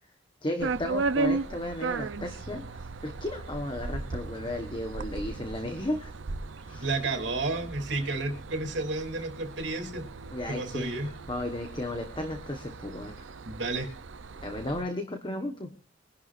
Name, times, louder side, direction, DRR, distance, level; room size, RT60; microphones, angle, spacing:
voice 1, 0.4-6.1 6.6-7.0 10.3-13.3 14.4-15.7, left 1 dB, 25° left, 5 dB, 1.3 m, -34 dB
sound 1, 0.6-14.8, right 3 dB, 85° right, 0.7 m, -36 dB
voice 2, 6.8-10.1 10.5-11.1 13.4-13.9, right 2 dB, 65° right, 4 dB, 3.3 m, -31 dB
23.5 x 11.5 x 2.6 m, 0.38 s
head